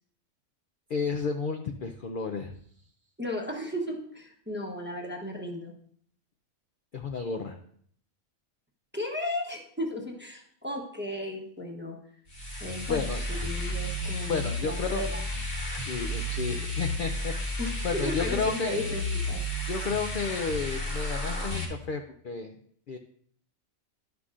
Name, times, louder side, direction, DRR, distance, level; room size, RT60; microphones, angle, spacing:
voice 1, 0.9-2.5 6.9-7.6 12.9-13.3 14.3-15.1 15.8-17.3 17.8-18.8 19.7-22.6 22.9-23.0, left 5 dB, 65° left, 5 dB, 0.5 m, -32 dB
voice 2, 3.2-5.7 8.9-12.0 12.6-15.2 17.6-19.4, left 1 dB, 10° right, 1 dB, 0.6 m, -35 dB
sound 1, 12.3-21.7, left 1 dB, 45° left, 1.8 m, -32 dB
11.0 x 5.9 x 2.4 m, 0.62 s
omnidirectional pair, 1.4 m